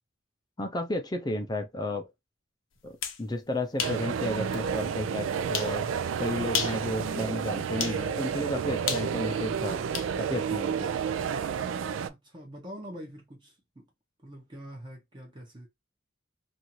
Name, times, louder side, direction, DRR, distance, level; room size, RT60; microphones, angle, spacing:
voice 1, 0.6-2.1 2.8-5.9 6.2-9.9 10.2-10.9, left 1 dB, 20° left, 0.5 m, -33 dB
sound 1, 2.8-3.2 3.8-4.0 4.5-4.6 5.5-5.8 6.4-6.8 7.8-8.0 8.9-10.1, left 8 dB, 85° left, 0.6 m, -32 dB
sound 2, 3.8-12.1, right 7 dB, 80° right, 0.3 m, -31 dB
voice 2, 6.9-7.3 12.1-13.9 14.2-15.7, equal, 25° right, 0.8 m, -45 dB
2.6 x 2.5 x 2.8 m
head